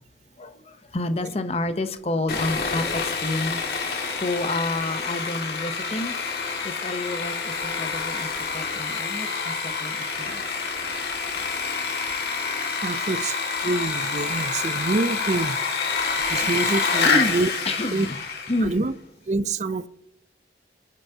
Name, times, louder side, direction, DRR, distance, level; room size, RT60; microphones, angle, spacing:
voice 1, 0.4-3.6 3.9-6.2 6.6-10.4 17.0-17.4 17.7-18.2 18.5-18.8, left 2 dB, 35° left, 0.7 m, -29 dB
Sawing, 2.3-18.7, left 4 dB, 60° left, 2.0 m, -27 dB
voice 2, 12.8-15.6 16.3-17.5 17.9-18.1 18.6-19.0 19.3-19.9, right 3 dB, 40° right, 0.4 m, -26 dB
27.5 x 9.1 x 2.8 m
head